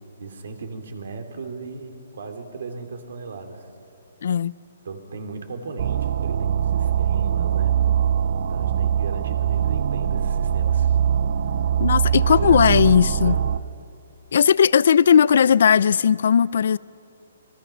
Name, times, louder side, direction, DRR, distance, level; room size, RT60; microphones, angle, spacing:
voice 1, 0.2-3.7 4.8-7.7 8.5-11.0 12.2-13.5, right 4 dB, 70° right, 2.8 m, -36 dB
voice 2, 4.2-4.6 11.8-13.4 14.3-16.8, left 7 dB, 65° left, 0.4 m, -17 dB
sound 1, 5.8-13.6, right 9 dB, 50° right, 0.6 m, -22 dB
26.5 x 21.0 x 5.7 m
hypercardioid pair, 160°, 0 cm